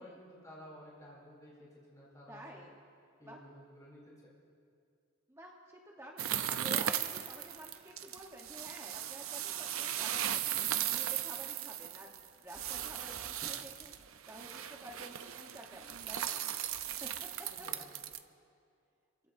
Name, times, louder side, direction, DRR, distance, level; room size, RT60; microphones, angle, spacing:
voice 1, 0.0-2.7 3.2-4.3 17.5-17.8, equal, 15° left, -6 dB, 3.9 m, -53 dB
voice 2, 2.3-2.7 3.2-3.4 5.3-14.0 14.3-16.4 16.8-17.1, right 1 dB, 15° right, -1 dB, 1.0 m, -51 dB
sound 1, 6.2-18.2, right 10 dB, 90° right, 0.6 m, -37 dB
29.0 x 15.5 x 2.6 m, 2.4 s
head